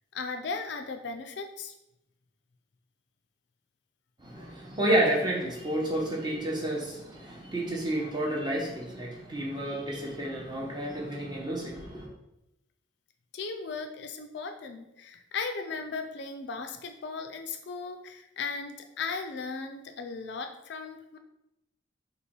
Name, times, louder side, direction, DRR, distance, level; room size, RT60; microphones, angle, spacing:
voice 1, 0.1-1.7 13.3-21.2, left 4 dB, 60° left, 6 dB, 0.4 m, -37 dB
voice 2, 4.2-12.1, right 1 dB, 20° right, -2 dB, 0.8 m, -30 dB
3.2 x 3.0 x 4.4 m, 0.87 s
head